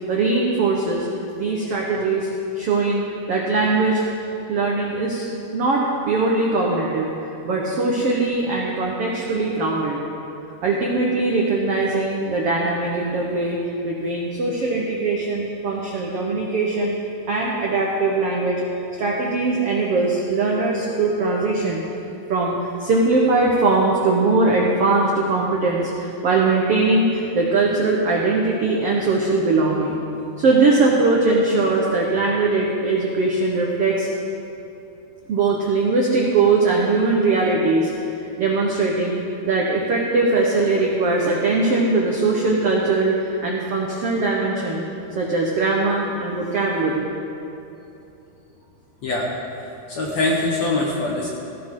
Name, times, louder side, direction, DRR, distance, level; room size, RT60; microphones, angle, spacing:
voice 1, 0.1-1.1 1.3-2.3 2.5-3.0 3.3-4.0 4.5-7.1 7.4-10.0 10.6-13.6 13.8-17.0 17.3-18.6 19.0-21.8 22.3-30.0 30.4-34.1 35.3-37.9 38.4-44.8 45.1-47.1, right 3 dB, 75° right, -2 dB, 1.3 m, -21 dB
voice 2, 49.0-51.3, left 2 dB, 60° left, -2 dB, 1.9 m, -24 dB
16.0 x 16.0 x 3.8 m, 2.8 s
omnidirectional pair, 4.6 m